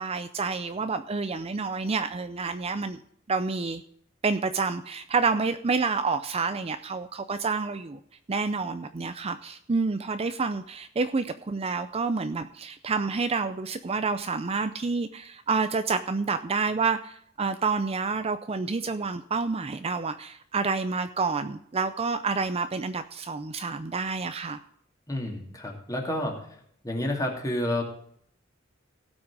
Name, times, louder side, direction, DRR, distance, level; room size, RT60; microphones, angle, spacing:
voice 1, 0.0-3.0 3.3-3.8 4.2-8.0 8.3-24.6, right 4 dB, 30° right, 10 dB, 0.5 m, -28 dB
voice 2, 25.1-26.4 26.8-27.8, left 1 dB, 15° left, 0 dB, 2.6 m, -29 dB
17.0 x 6.2 x 4.7 m, 0.67 s
head